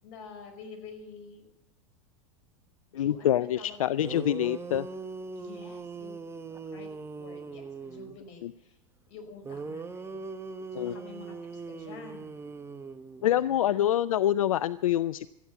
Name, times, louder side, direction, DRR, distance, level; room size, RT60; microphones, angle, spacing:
voice 1, 0.0-1.5 2.9-4.0 5.4-6.2 6.5-6.9 7.2-8.8 9.1-10.3 10.7-12.3 13.3-13.9, left 5 dB, 55° left, 4 dB, 5.1 m, -48 dB
voice 2, 2.9-4.9 8.4-8.5 10.7-10.9 13.2-15.3, left 11 dB, 85° left, 17 dB, 0.5 m, -26 dB
sound 1, 3.7-3.8 4.0-8.2 9.4-13.5, right 4 dB, 15° right, 1.1 m, -40 dB
14.5 x 9.7 x 8.2 m, 0.93 s
hypercardioid pair, 105°, 17 cm